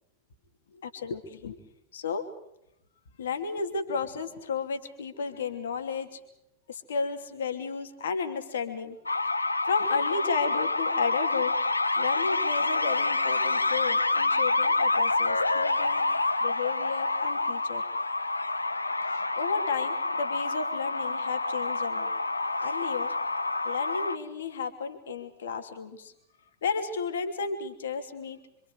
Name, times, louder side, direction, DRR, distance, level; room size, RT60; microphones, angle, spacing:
voice 1, 0.8-1.6 1.9-2.2 3.2-6.2 6.7-9.0 9.2-9.3 9.6-11.5 12.0-16.0 16.4-17.9 19.0-22.1 22.6-23.1 23.6-26.1 26.6-28.4, left 5 dB, 65° left, 7 dB, 2.9 m, -33 dB
sound 1, 9.1-24.2, left 2 dB, 80° left, 1.0 m, -27 dB
27.0 x 26.0 x 4.9 m, 0.82 s
figure-of-eight pair, 90°, 0 cm